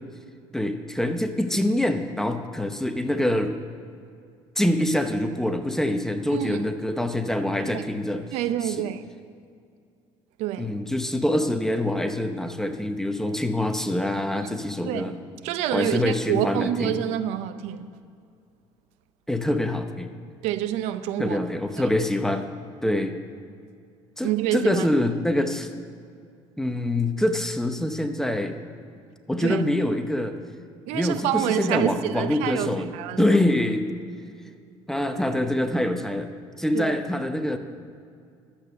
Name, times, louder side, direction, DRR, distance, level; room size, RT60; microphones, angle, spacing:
voice 1, 0.5-3.6 4.6-8.2 8.7-8.8 10.6-15.1 15.7-17.0 19.3-20.1 21.2-22.5 22.8-23.2 24.2-25.7 26.6-28.6 29.3-30.4 30.9-32.9 33.2-33.9 34.9-36.3 36.6-37.6, left 1 dB, 5° left, 0.8 m, -25 dB
voice 2, 6.3-6.6 7.6-7.8 8.3-9.0 10.4-10.8 14.8-15.1 15.4-17.9 20.4-21.4 21.8-21.9 24.2-24.9 29.4-29.6 30.9-33.4 36.7-37.0, right 12 dB, 80° right, 0.7 m, -27 dB
11.5 x 8.2 x 6.7 m
cardioid pair, 100°, 11 cm